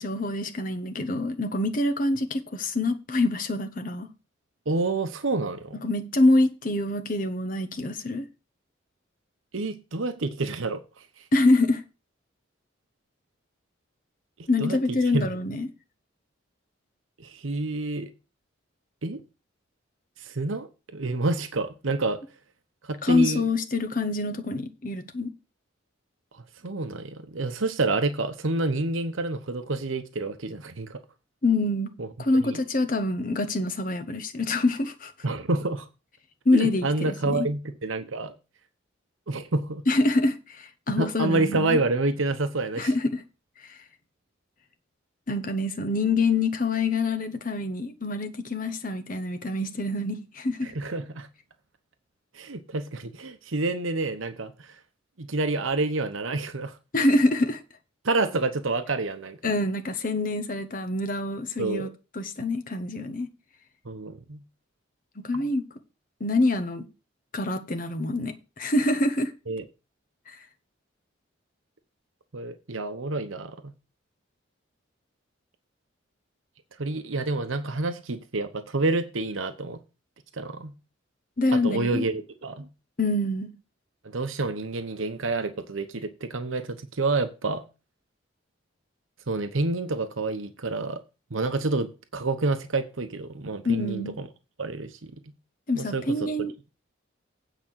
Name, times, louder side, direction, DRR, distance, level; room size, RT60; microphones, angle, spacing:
voice 1, 0.0-4.1 5.7-8.3 11.3-11.8 14.5-15.7 23.0-25.3 31.4-31.9 32.2-35.1 36.4-37.5 39.9-41.8 42.8-43.2 43.6-43.8 45.3-50.7 56.9-57.6 59.4-61.9 62.1-63.3 65.2-65.6 66.2-66.9 67.3-69.3 70.3-70.4 81.4-82.0 83.0-83.5 93.6-94.2 95.7-96.5, left 2 dB, 45° left, 1.1 m, -25 dB
voice 2, 4.7-5.8 9.5-10.8 14.6-14.8 15.1-15.3 17.2-18.1 19.0-19.2 20.2-22.2 22.8-23.4 26.6-31.0 32.0-32.1 32.4-32.6 35.2-35.9 36.5-38.3 39.3-39.9 41.0-42.9 50.6-51.3 52.3-54.7 55.2-56.8 58.0-59.4 61.6-61.9 63.8-64.4 65.3-65.4 69.5-69.6 72.3-73.6 76.8-79.8 80.3-80.7 81.5-82.7 84.0-87.6 89.3-91.0 91.3-94.3 94.6-95.2 95.7-96.3, right 3 dB, 85° right, 1.0 m, -28 dB
9.0 x 5.1 x 7.4 m
head